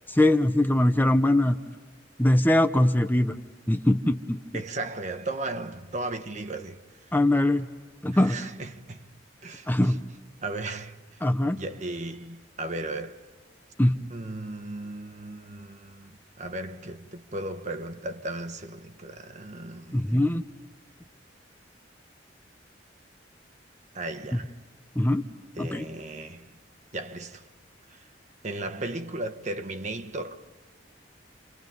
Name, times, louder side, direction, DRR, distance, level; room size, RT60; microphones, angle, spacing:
voice 1, 0.1-1.6 2.2-3.3 3.7-4.4 7.1-7.7 8.0-8.4 9.7-10.0 11.2-11.6 13.8-13.9 19.9-20.4 24.3-24.4 25.0-25.2 25.6-25.8, left 1 dB, 10° left, 0.8 m, -22 dB
voice 2, 4.5-6.8 8.1-9.1 9.4-10.0 10.4-11.2 11.5-13.2 14.1-20.2 23.9-24.6 25.6-26.5 26.9-27.4 27.9-28.0 28.4-30.5, right 2 dB, 40° right, 1.2 m, -36 dB
30.0 x 28.0 x 5.4 m
head